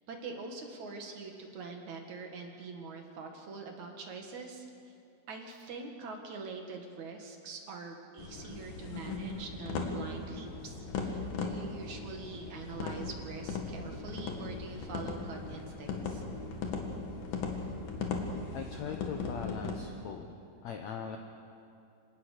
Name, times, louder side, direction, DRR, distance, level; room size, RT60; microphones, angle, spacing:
voice 1, 0.1-4.7 5.3-16.2, right 4 dB, 55° right, 3 dB, 2.8 m, -44 dB
sound 1, 8.2-19.8, left 4 dB, 65° left, 3.4 m, -38 dB
voice 2, 18.5-20.4 20.6-21.2, left 7 dB, 80° left, 4 dB, 1.6 m, -40 dB
26.0 x 18.0 x 6.6 m, 2.5 s
omnidirectional pair, 4.7 m